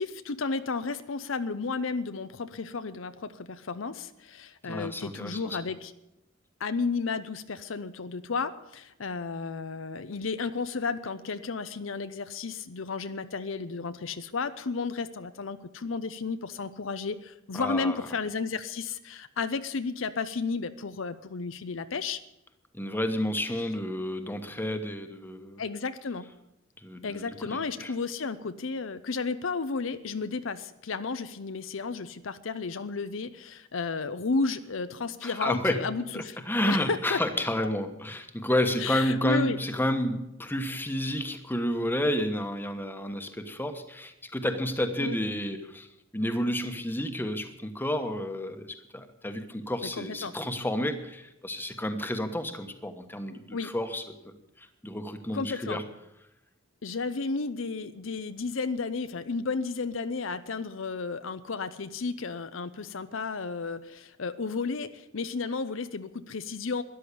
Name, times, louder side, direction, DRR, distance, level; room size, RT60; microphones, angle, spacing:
voice 1, 0.0-5.9 6.6-22.2 25.6-26.3 27.0-37.2 38.8-39.6 45.0-45.2 49.8-50.3 53.5-53.7 55.3-55.8 56.8-66.8, left 4 dB, 70° left, 11 dB, 0.7 m, -33 dB
voice 2, 4.6-5.6 17.5-18.0 22.7-25.6 26.8-27.9 35.2-35.8 36.1-45.9 46.1-55.8, left 1 dB, 10° left, 7 dB, 1.2 m, -31 dB
13.5 x 11.0 x 8.5 m, 0.87 s
head